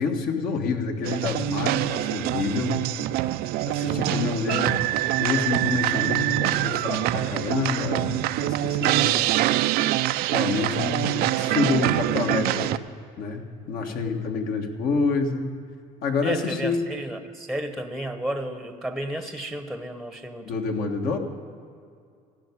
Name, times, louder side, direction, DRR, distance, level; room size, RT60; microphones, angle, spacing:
voice 1, 0.0-2.8 3.7-4.8 5.2-9.2 10.3-12.7 13.2-15.5 16.0-16.8 20.4-21.2, left 4 dB, 60° left, 3 dB, 1.5 m, -27 dB
sound 1, 1.0-12.8, right 15 dB, 65° right, 0.4 m, -25 dB
voice 2, 3.7-4.1 16.2-20.6, right 1 dB, ahead, 8 dB, 0.9 m, -33 dB
15.5 x 6.0 x 9.7 m, 2.3 s
supercardioid pair, 100°, 17 cm